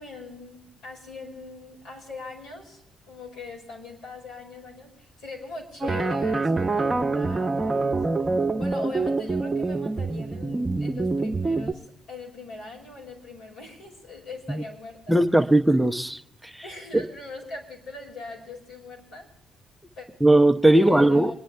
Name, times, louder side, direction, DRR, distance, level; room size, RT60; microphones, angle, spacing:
voice 1, 0.0-8.0 8.6-15.2 16.6-19.3 20.0-20.1 20.7-21.3, left 3 dB, 90° left, 5.5 m, -41 dB
sound 1, 5.8-11.7, right 3 dB, 20° right, 1.3 m, -25 dB
voice 2, 15.1-16.6 16.9-17.0 20.2-21.3, right 1 dB, 5° right, 0.8 m, -19 dB
27.5 x 10.5 x 3.4 m
cardioid pair, 90°, 0 cm